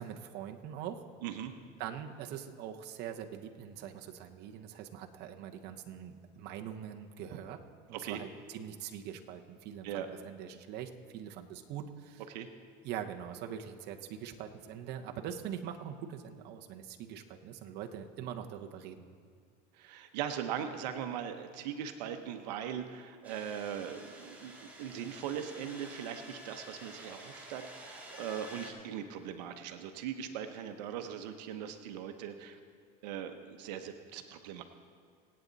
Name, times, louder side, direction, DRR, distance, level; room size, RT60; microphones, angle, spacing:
voice 1, 0.0-1.1 1.8-7.6 7.9-12.3 12.8-19.1, right 9 dB, 55° right, 4 dB, 1.0 m, -43 dB
voice 2, 1.2-1.5 7.9-8.2 9.8-10.1 12.3-12.5 19.7-32.6 33.0-34.6, right 9 dB, 85° right, 7 dB, 1.0 m, -40 dB
sound 1, 23.2-28.7, equal, 5° right, 2.6 m, -50 dB
25.0 x 8.8 x 4.0 m, 2.1 s
supercardioid pair, 125°, 21 cm